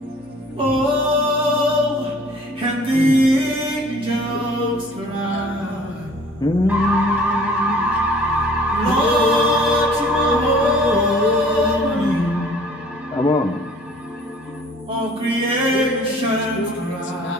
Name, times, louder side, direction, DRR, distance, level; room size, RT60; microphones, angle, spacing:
voice 1, 0.6-1.9 2.6-3.8 4.1-4.5 5.2-5.3 8.7-9.8 10.1-11.8 14.9-15.9 16.2-16.5, equal, 30° right, 1.9 m, -19 dB
voice 2, 2.9-3.3 6.4-8.0 8.9-12.7 13.1-13.6, left 2 dB, 20° left, 0.6 m, -22 dB
voice 3, 4.3-4.8 5.1-6.0 10.4-11.1 14.5-14.6 15.7-17.3, left 3 dB, 70° left, 0.7 m, -30 dB
sound 1, 6.7-14.6, right 1 dB, 10° right, 1.3 m, -24 dB
16.5 x 6.4 x 3.4 m
head